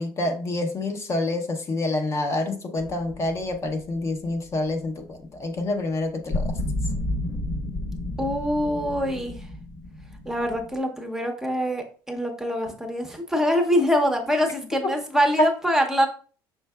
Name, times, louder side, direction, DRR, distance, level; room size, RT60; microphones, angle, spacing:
voice 1, 0.0-6.6 15.4-15.5, left 2 dB, 35° left, 5 dB, 0.7 m, -27 dB
sound 1, 2.8-4.7 6.3-10.8, left 1 dB, 65° left, 1.2 m, -31 dB
voice 2, 8.2-9.5 10.3-16.1, equal, 5° right, 3 dB, 0.7 m, -24 dB
5.5 x 3.9 x 2.2 m, 0.39 s
cardioid pair, 130°, 8 cm